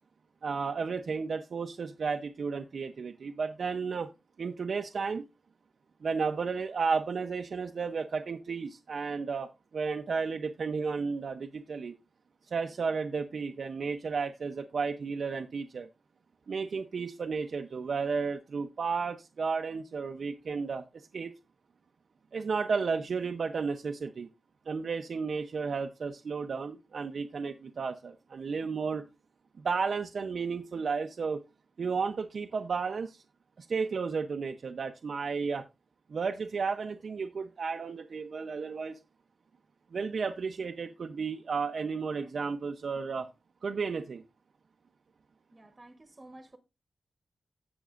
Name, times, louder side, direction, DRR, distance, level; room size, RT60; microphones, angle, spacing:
voice 1, 0.4-4.1 4.4-5.2 6.0-11.9 12.5-15.9 16.5-20.8 21.1-21.3 22.3-24.3 24.7-29.0 29.6-31.4 31.8-33.2 33.6-35.6 36.1-39.0 39.9-43.3 43.6-44.2, right 5 dB, 65° right, 0.6 m, -33 dB
voice 2, 45.5-46.6, right 1 dB, 25° right, 1.1 m, -52 dB
16.5 x 6.0 x 2.4 m
wide cardioid pair, 115°, 0 cm